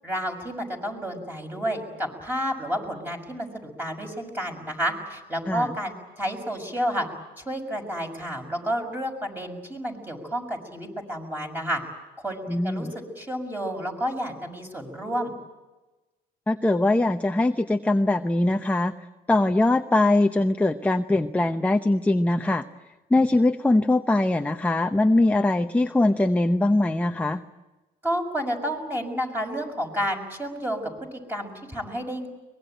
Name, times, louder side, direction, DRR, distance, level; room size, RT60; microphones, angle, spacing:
voice 1, 0.0-3.5 3.8-7.1 7.4-11.8 12.2-15.3 28.0-30.8 31.1-32.3, equal, 10° right, 3 dB, 6.1 m, -30 dB
voice 2, 12.5-12.9 16.5-18.9 19.3-22.6 23.1-27.4, left 2 dB, 10° left, 6 dB, 0.8 m, -22 dB
23.5 x 21.0 x 9.1 m, 1.1 s
cardioid pair, 110°, 17 cm